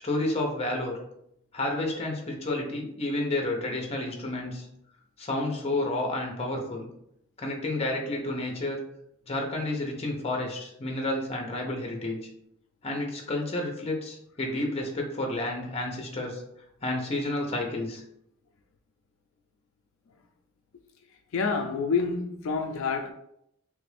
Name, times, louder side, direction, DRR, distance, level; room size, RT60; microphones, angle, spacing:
voice 1, 0.0-1.0 1.5-4.7 5.2-6.9 7.4-8.8 9.3-12.2 12.8-16.4 16.8-18.0, left 2 dB, 30° left, 1 dB, 0.6 m, -30 dB
voice 2, 21.3-23.1, left 5 dB, 70° left, 4 dB, 0.3 m, -28 dB
3.2 x 2.5 x 3.3 m, 0.75 s
head